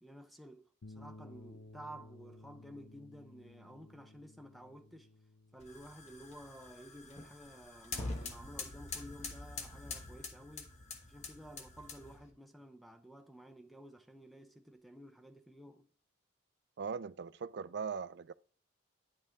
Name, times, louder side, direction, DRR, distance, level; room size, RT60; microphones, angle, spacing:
voice 1, 0.0-5.1 5.5-10.8 11.1-15.9, equal, ahead, 0.6 m, -53 dB
sound 1, 0.8-9.3, left 2 dB, 75° left, 0.8 m, -57 dB
sound 2, 5.6-12.3, left 3 dB, 35° left, 1.2 m, -45 dB
voice 2, 16.8-18.3, right 6 dB, 55° right, 0.4 m, -40 dB
10.5 x 5.4 x 3.6 m
head